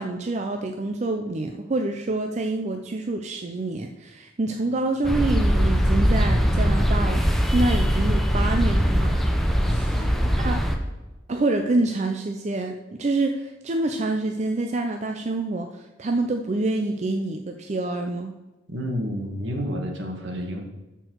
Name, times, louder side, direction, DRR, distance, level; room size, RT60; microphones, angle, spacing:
voice 1, 0.0-9.2 9.6-9.9 10.4-10.6 11.3-18.4, right 2 dB, 35° right, 4 dB, 0.5 m, -27 dB
sound 1, 5.0-10.8, equal, ahead, 0.8 m, -21 dB
voice 2, 18.7-20.6, equal, 70° right, 2 dB, 1.7 m, -30 dB
12.5 x 4.6 x 4.5 m, 1.1 s
head